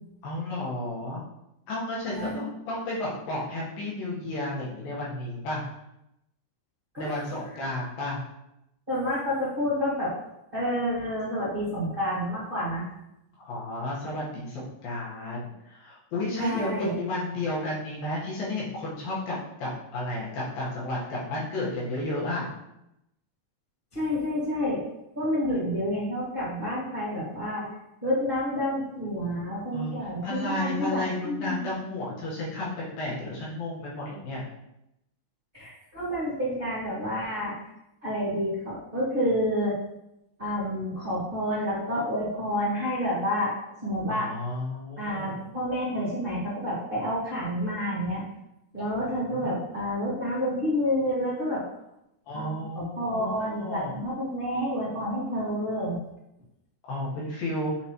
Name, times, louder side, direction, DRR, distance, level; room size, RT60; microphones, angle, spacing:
voice 1, 0.2-1.2 1.7-5.6 7.0-8.2 13.4-22.5 29.7-34.4 44.1-45.5 49.0-49.5 52.3-53.9 56.9-57.7, left 1 dB, 65° left, -6 dB, 2.9 m, -32 dB
voice 2, 8.9-10.1 10.5-12.9 16.4-16.9 23.9-24.8 25.1-27.7 28.0-31.7 35.5-37.6 38.0-39.8 40.4-43.5 43.8-44.3 45.0-48.2 48.7-51.6 52.3-56.0, equal, 35° right, -10 dB, 0.9 m, -29 dB
9.0 x 3.9 x 3.0 m, 0.86 s
omnidirectional pair, 4.9 m